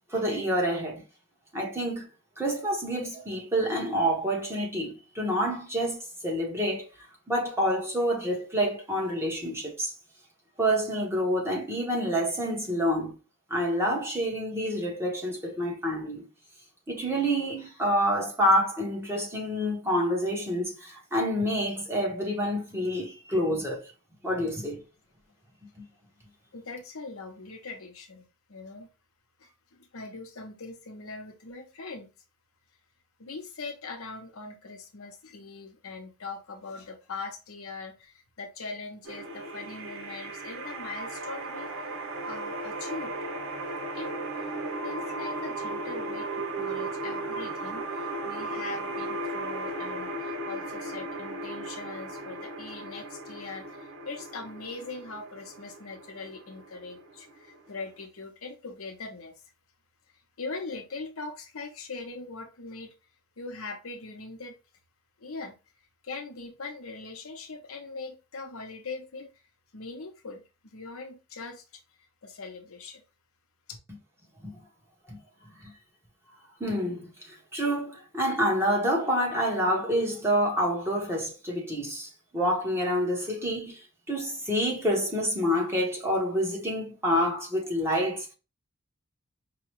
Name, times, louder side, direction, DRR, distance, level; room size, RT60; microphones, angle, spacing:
voice 1, 0.1-1.0 1.5-2.1 2.4-6.9 7.3-9.9 10.6-13.1 13.5-16.2 16.9-23.9 24.2-24.8 74.4-74.5 75.1-75.2 76.6-83.8 84.1-88.3, equal, 10° right, 1.1 m, -28 dB
voice 2, 26.5-28.9 29.4-32.1 33.2-41.7 42.2-43.1 43.9-59.3 60.4-62.9 63.4-64.5 65.2-65.5 66.0-69.3 69.7-71.6 72.2-73.0, left 3 dB, 70° left, 0.8 m, -41 dB
sound 1, 39.0-58.0, right 2 dB, 65° right, 1.2 m, -36 dB
4.8 x 2.3 x 3.1 m
head